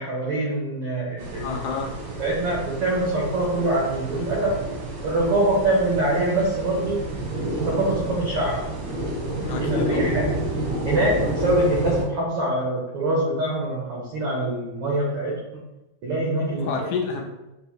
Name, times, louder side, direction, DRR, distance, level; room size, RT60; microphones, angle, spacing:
voice 1, 0.0-1.7 2.2-4.6 5.0-7.0 7.7-8.7 9.5-10.3 10.8-15.6 16.0-16.9, right 1 dB, 90° right, -3 dB, 1.2 m, -24 dB
sound 1, 1.2-12.0, right 1 dB, 70° right, 1.1 m, -29 dB
voice 2, 1.4-2.0 9.4-10.2 16.6-17.2, left 5 dB, 80° left, 2 dB, 1.9 m, -29 dB
5.4 x 2.1 x 4.5 m, 0.97 s
omnidirectional pair, 3.7 m